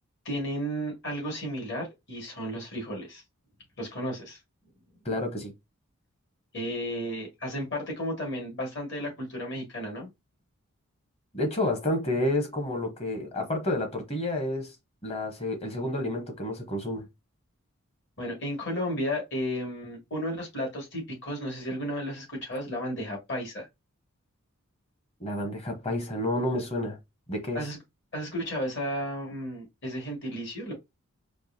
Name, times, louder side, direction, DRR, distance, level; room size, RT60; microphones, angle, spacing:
voice 1, 0.2-3.2 3.8-4.4 6.5-10.1 18.2-23.7 27.5-27.8 28.1-30.7, equal, 55° left, 2.1 m, -33 dB
voice 2, 5.0-5.5 11.3-14.7 15.0-17.1 25.2-27.0 27.3-27.6, left 1 dB, 30° left, 1.0 m, -30 dB
4.6 x 2.6 x 2.8 m
head